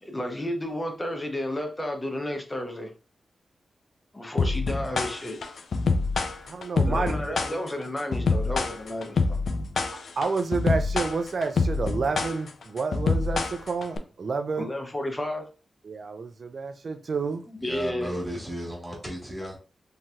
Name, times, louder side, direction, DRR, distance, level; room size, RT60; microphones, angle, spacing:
voice 1, 0.0-2.9 4.1-5.4 6.9-9.4 14.6-15.5 17.5-18.1, left 1 dB, 15° left, 0.6 m, -32 dB
sound 1, 4.4-14.0, left 4 dB, 70° left, 0.4 m, -26 dB
voice 2, 6.4-7.7 9.9-14.7 15.8-17.4, right 4 dB, 55° right, 0.4 m, -30 dB
voice 3, 17.6-19.6, equal, ahead, 1.3 m, -34 dB
3.1 x 2.8 x 2.3 m
wide cardioid pair, 115°, 0 cm